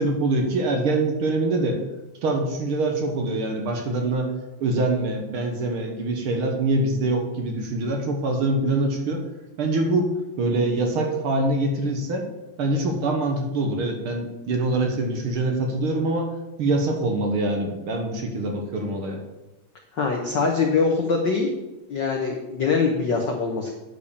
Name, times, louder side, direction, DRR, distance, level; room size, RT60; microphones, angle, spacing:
voice 1, 0.0-1.8 2.2-4.3 4.6-9.2 9.6-12.3 12.6-19.2, right 2 dB, 60° right, 3 dB, 1.6 m, -24 dB
voice 2, 20.0-21.5 21.9-23.7, left 4 dB, 75° left, 1 dB, 1.0 m, -23 dB
10.0 x 5.2 x 6.8 m, 1.0 s
omnidirectional pair, 3.6 m